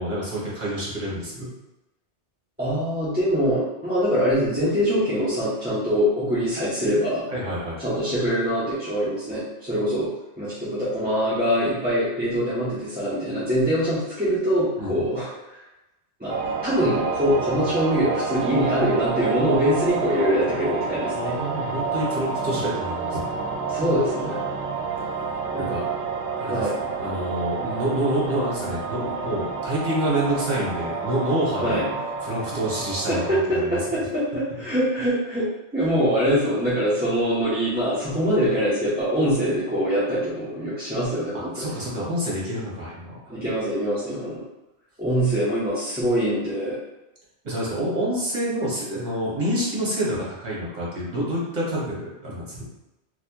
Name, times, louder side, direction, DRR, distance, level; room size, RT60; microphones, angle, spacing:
voice 1, 0.0-1.5 7.3-7.8 14.8-14.9 21.1-23.5 25.6-25.9 26.4-31.8 32.2-33.8 41.3-43.2 47.4-52.7, right 1 dB, 40° right, -6 dB, 1.2 m, -28 dB
voice 2, 2.6-7.3 7.8-10.1 10.4-15.6 16.2-16.4 16.6-21.3 23.7-24.4 25.5-25.8 26.5-26.8 31.6-31.9 33.1-41.8 43.3-44.4 45.0-46.8, equal, 10° right, -12 dB, 0.8 m, -24 dB
sound 1, 16.3-33.4, right 5 dB, 60° right, 0.6 m, -29 dB
4.1 x 2.4 x 2.9 m, 0.95 s
omnidirectional pair, 1.2 m